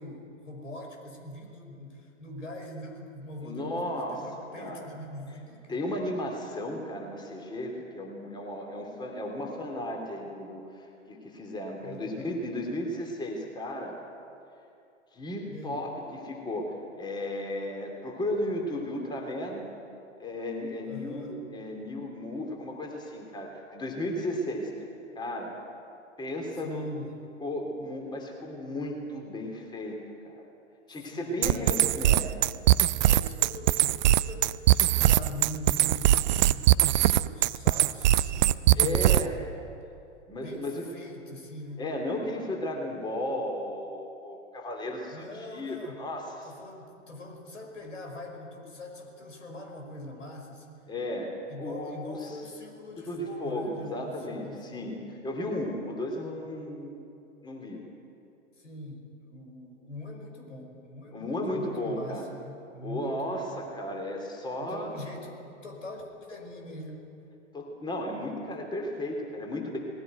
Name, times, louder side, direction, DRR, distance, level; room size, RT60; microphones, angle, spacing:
voice 1, 0.0-5.8 11.8-12.4 15.5-15.8 20.9-21.4 26.6-27.1 31.1-32.0 33.0-39.2 40.3-41.9 45.1-46.0 46.4-50.9 51.5-54.9 58.6-63.4 64.6-67.4, left 1 dB, 75° left, 2 dB, 5.5 m, -43 dB
voice 2, 3.4-4.9 5.7-14.0 15.1-19.7 20.2-24.9 25.1-25.6 26.2-26.9 27.4-30.0 30.2-30.4 30.9-32.3 38.8-39.3 40.3-40.8 41.8-45.2 45.5-46.5 50.9-52.3 53.0-55.0 55.2-57.1 57.4-57.8 61.1-62.3 62.8-65.0 67.5-69.8, left 1 dB, 10° left, 1 dB, 3.0 m, -34 dB
sound 1, 31.4-39.4, right 14 dB, 35° right, 0.5 m, -21 dB
20.0 x 17.0 x 9.3 m, 2.6 s
figure-of-eight pair, 100°, 38 cm